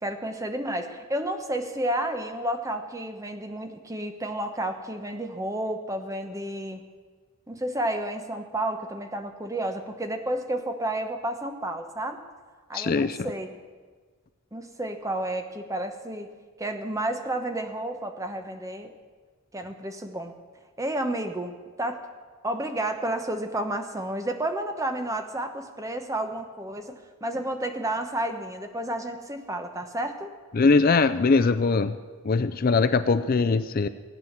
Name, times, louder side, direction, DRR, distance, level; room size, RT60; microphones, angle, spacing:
voice 1, 0.0-6.8 7.5-12.2 12.7-13.6 14.5-16.3 16.6-18.9 19.5-20.3 20.8-21.5 21.8-22.0 22.4-30.3, right 1 dB, 15° right, 6 dB, 1.0 m, -31 dB
voice 2, 12.7-13.2 30.5-32.0 32.2-33.9, left 4 dB, 40° left, 12 dB, 0.4 m, -21 dB
16.0 x 9.1 x 7.3 m, 1.5 s
head